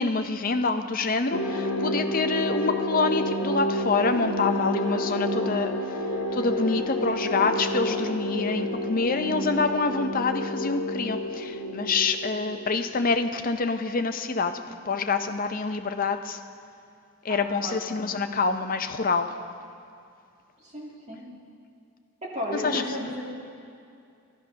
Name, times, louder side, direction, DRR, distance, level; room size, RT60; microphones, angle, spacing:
voice 1, 0.0-5.7 6.3-14.6 14.9-16.4 17.2-19.3 22.5-22.9, left 4 dB, 40° left, 7 dB, 0.5 m, -26 dB
sound 1, 1.3-13.1, equal, 70° left, 1.2 m, -29 dB
voice 2, 17.3-17.8 20.6-21.2 22.2-23.2, left 1 dB, 30° right, -4 dB, 2.3 m, -34 dB
12.5 x 12.0 x 5.6 m, 2.5 s
head